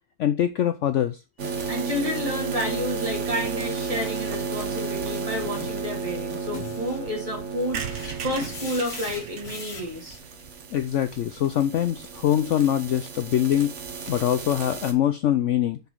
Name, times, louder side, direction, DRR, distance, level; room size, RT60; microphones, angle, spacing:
voice 1, 0.2-1.2 10.7-13.7 14.1-15.8, left 11 dB, 65° left, 11 dB, 0.8 m, -23 dB
sound 1, 1.4-14.9, right 5 dB, 50° right, 1.4 m, -33 dB
voice 2, 1.7-10.2, left 1 dB, 20° right, 0 dB, 2.8 m, -30 dB
sound 2, 5.4-10.5, left 3 dB, 80° left, 2.7 m, -41 dB
sound 3, 7.7-11.4 11.9-12.0 12.1-12.2 12.5-12.6 12.8-13.0, right 7 dB, 80° right, 1.5 m, -38 dB
6.9 x 6.0 x 4.7 m, 0.26 s
omnidirectional pair, 1.6 m